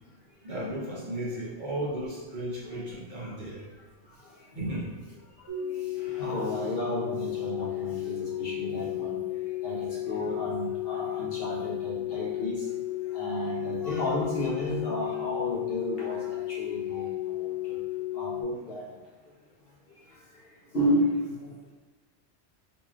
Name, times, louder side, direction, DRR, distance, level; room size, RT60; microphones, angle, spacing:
voice 1, 0.4-3.6 4.5-4.9, right 1 dB, 45° right, -6 dB, 0.8 m, -34 dB
sound 1, 5.5-18.4, left 14 dB, 65° right, 1.5 m, -33 dB
voice 2, 6.0-9.2 9.6-12.6 13.1-16.2 16.6-17.0 17.4-17.5 18.1-18.8 20.7-21.2, equal, 55° left, -5 dB, 1.1 m, -32 dB
3.9 x 3.0 x 2.4 m, 1.3 s
omnidirectional pair, 1.2 m